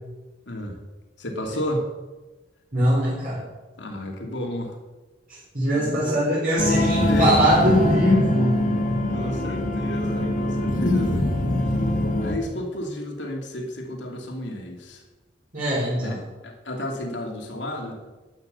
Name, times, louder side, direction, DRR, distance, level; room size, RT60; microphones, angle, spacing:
voice 1, 0.5-0.8 1.2-1.9 3.8-4.8 5.7-6.2 6.7-6.8 7.1-7.4 9.1-11.3 11.6-11.8 12.2-15.0 16.0-18.0, left 1 dB, 85° left, 2 dB, 2.7 m, -32 dB
voice 2, 2.7-3.4 5.3-8.6 15.5-16.2, equal, 50° right, -7 dB, 4.3 m, -21 dB
sound 1, 6.6-12.4, left 1 dB, 45° left, 1.9 m, -23 dB
12.0 x 9.1 x 6.9 m, 1.2 s
head